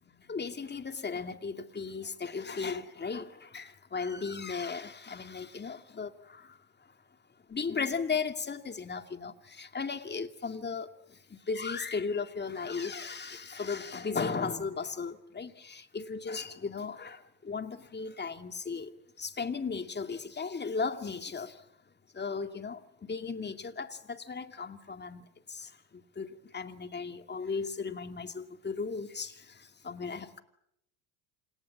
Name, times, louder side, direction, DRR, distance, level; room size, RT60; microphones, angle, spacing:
voice 1, 0.1-6.6 7.5-18.9 19.2-21.6 22.1-22.8 23.1-25.2 25.5-30.4, left 5 dB, 20° left, 2.4 m, -36 dB
29.0 x 27.5 x 7.4 m
supercardioid pair, 95°, 46 cm